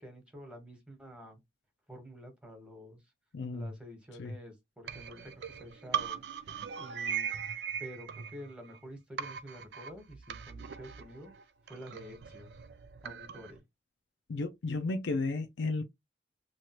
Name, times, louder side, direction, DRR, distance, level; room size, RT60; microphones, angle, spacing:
voice 1, 0.0-1.4 1.9-3.0 3.5-6.2 6.7-7.3 7.8-11.3 11.7-12.5 13.0-13.6, equal, 5° right, 1.1 m, -49 dB
voice 2, 3.3-3.7 4.2-4.3 14.3-15.8, left 3 dB, 90° left, 0.5 m, -33 dB
sound 1, 4.9-8.8 9.2-13.6, right 7 dB, 70° right, 0.4 m, -40 dB
3.1 x 2.4 x 2.9 m
head